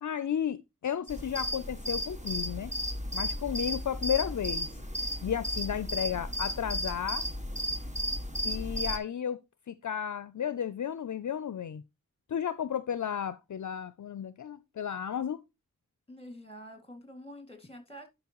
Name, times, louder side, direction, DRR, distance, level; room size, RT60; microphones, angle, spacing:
voice 1, 0.0-2.7 3.1-4.7 5.2-7.2 8.4-9.4 9.7-11.8 12.3-15.4, left 9 dB, 60° left, 0.4 m, -33 dB
sound 1, 1.1-9.0, equal, 20° right, 1.6 m, -34 dB
voice 2, 16.1-18.1, equal, 15° left, 2.2 m, -47 dB
10.5 x 5.2 x 2.9 m
wide cardioid pair, 45°, 33 cm